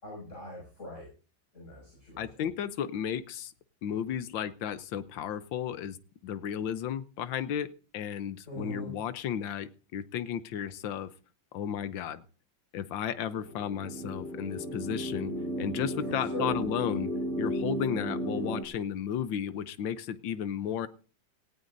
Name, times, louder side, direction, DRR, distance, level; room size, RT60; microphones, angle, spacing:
voice 1, 0.0-1.1 1.5-2.2 8.5-8.9 16.1-16.6, equal, 40° left, -3 dB, 6.2 m, -41 dB
voice 2, 2.2-3.5 3.8-6.0 6.2-11.1 11.5-12.2 12.7-15.3 15.6-17.1 17.4-20.9, left 9 dB, 80° left, 14 dB, 1.6 m, -34 dB
sound 1, 13.3-18.6, equal, 45° right, 2.2 m, -34 dB
17.5 x 16.0 x 2.6 m, 0.37 s
omnidirectional pair, 2.1 m